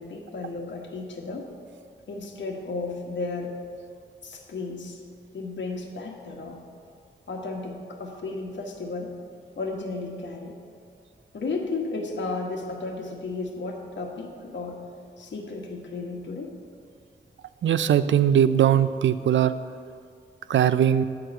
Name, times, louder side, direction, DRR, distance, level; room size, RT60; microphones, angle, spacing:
voice 1, 0.0-1.5 2.1-3.6 4.2-5.0 5.3-6.6 7.3-9.1 9.6-10.6 11.3-14.8 15.2-16.6, left 3 dB, 70° left, 0 dB, 1.4 m, -33 dB
voice 2, 17.6-19.5 20.5-21.0, right 9 dB, 75° right, 13 dB, 0.4 m, -20 dB
9.9 x 4.7 x 7.7 m, 2.3 s
wide cardioid pair, 100°, 19 cm